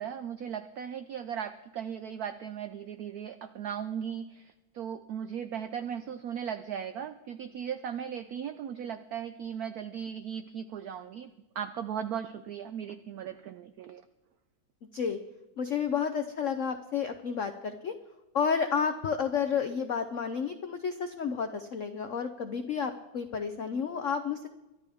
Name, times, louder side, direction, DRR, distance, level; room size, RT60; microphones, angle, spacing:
voice 1, 0.0-14.0, right 8 dB, 85° right, 10 dB, 0.8 m, -37 dB
voice 2, 15.6-17.9 18.3-24.5, left 6 dB, 85° left, 8 dB, 0.6 m, -31 dB
23.5 x 11.5 x 3.5 m, 1.0 s
omnidirectional pair, 2.3 m